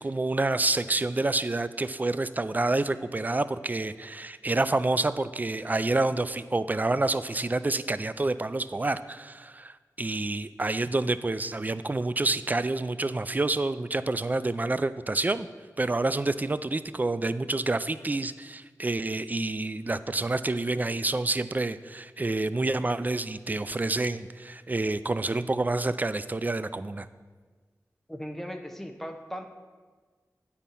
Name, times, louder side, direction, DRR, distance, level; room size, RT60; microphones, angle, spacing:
voice 1, 0.0-15.5 15.8-27.1, right 2 dB, 25° right, 14 dB, 0.3 m, -28 dB
voice 2, 28.1-29.5, equal, 5° left, 4 dB, 0.8 m, -37 dB
9.1 x 4.3 x 5.4 m, 1.5 s
cardioid pair, 45°, 6 cm